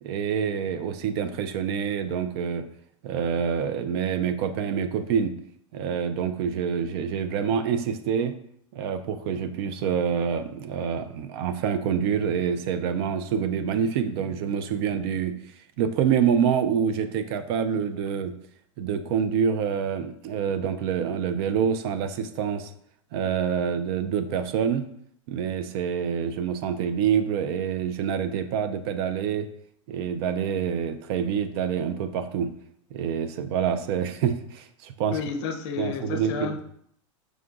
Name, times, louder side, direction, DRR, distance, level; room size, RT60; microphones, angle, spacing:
voice 1, 0.0-2.6 3.0-5.3 5.7-8.3 8.7-15.3 15.8-18.3 18.8-22.7 23.1-24.8 25.3-29.5 29.9-32.5 32.9-35.2 35.8-36.6, right 7 dB, 50° right, 10 dB, 0.4 m, -26 dB
voice 2, 35.1-36.6, left 5 dB, 55° left, 7 dB, 0.6 m, -31 dB
4.9 x 2.3 x 3.8 m, 0.67 s
hypercardioid pair, 125°, 16 cm